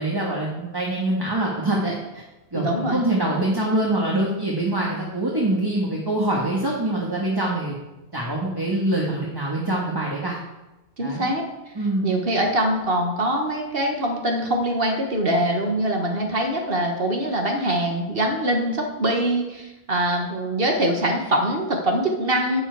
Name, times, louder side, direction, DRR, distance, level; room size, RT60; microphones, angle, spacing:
voice 1, 0.0-2.2 2.5-7.7 8.1-10.4 11.0-11.3 11.7-12.1, right 1 dB, 20° right, -3 dB, 1.4 m, -24 dB
voice 2, 2.5-3.0 11.0-11.4 12.0-22.6, right 1 dB, 60° right, 1 dB, 1.6 m, -23 dB
11.5 x 7.2 x 4.7 m, 1.0 s
omnidirectional pair, 1.1 m